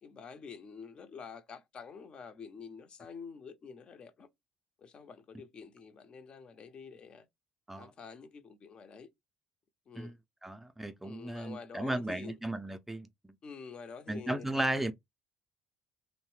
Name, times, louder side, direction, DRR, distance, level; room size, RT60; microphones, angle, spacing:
voice 1, 0.0-4.3 4.8-7.3 7.7-9.1 9.9-10.1 11.0-12.4 13.4-14.9, left 5 dB, 45° left, 0.5 m, -48 dB
voice 2, 10.4-13.1 14.1-14.9, right 1 dB, 10° right, 0.4 m, -35 dB
2.7 x 2.0 x 3.0 m
cardioid pair, 95°, 2 cm